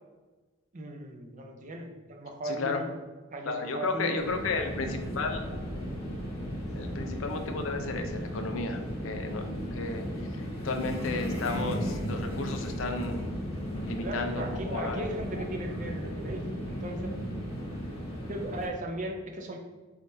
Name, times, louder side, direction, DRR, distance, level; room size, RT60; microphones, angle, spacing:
voice 1, 0.7-3.0 3.3-4.2 7.0-7.1 14.0-17.1 18.3-19.6, right 1 dB, 40° right, 2 dB, 0.5 m, -37 dB
voice 2, 2.4-2.8 3.4-5.8 6.8-10.3 10.6-13.3 13.6-15.4, left 3 dB, 85° left, 5 dB, 0.5 m, -33 dB
sound 1, 4.1-18.7, equal, 30° left, 1.3 m, -35 dB
4.2 x 3.6 x 2.6 m, 1.3 s
head